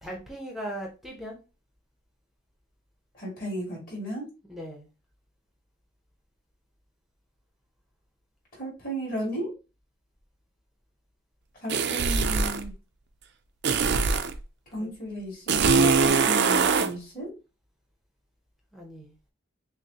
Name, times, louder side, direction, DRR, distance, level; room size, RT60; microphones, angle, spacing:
voice 1, 0.0-1.4 4.5-4.9 14.8-14.9 18.7-19.2, equal, ahead, 0 dB, 0.7 m, -38 dB
voice 2, 3.1-4.2 8.6-9.5 11.6-12.7 14.7-17.3, equal, 40° left, -4 dB, 2.4 m, -34 dB
sound 1, 11.7-12.6 13.6-14.4 15.5-16.9, right 5 dB, 50° right, 0.4 m, -22 dB
6.3 x 2.1 x 2.8 m, 0.31 s
head